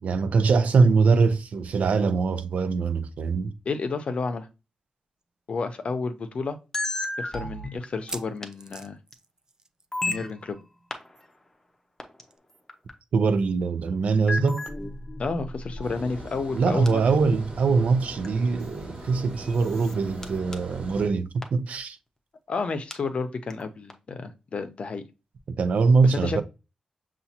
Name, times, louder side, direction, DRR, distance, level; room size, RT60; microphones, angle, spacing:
voice 1, 0.0-3.5 13.1-14.6 16.5-22.0 25.6-26.4, right 4 dB, 80° right, 0.5 m, -22 dB
voice 2, 3.7-4.5 5.5-6.6 7.2-9.0 10.1-10.6 15.2-17.0 22.5-25.0 26.0-26.4, left 4 dB, 55° left, 0.6 m, -31 dB
sound 1, 5.2-5.3 5.6-5.7 6.3-6.4 7.9-10.0 10.3-10.5 10.7-10.8 12.3-12.4, right 3 dB, 25° right, 0.4 m, -43 dB
sound 2, 6.7-8.4 9.1-9.2 9.9-10.6 10.9-11.1 12.0-12.2 12.7-12.9 14.3-16.5 16.9-17.1 18.2-18.3 19.1-19.2 19.4-19.9 20.2-20.3 20.5-20.6 21.4-21.5 22.9-23.0 23.5-23.6 23.9-24.0, left 2 dB, 20° left, 0.7 m, -33 dB
Water, 15.8-21.1, right 1 dB, 60° right, 1.5 m, -41 dB
6.9 x 2.4 x 2.8 m
wide cardioid pair, 130°, 2 cm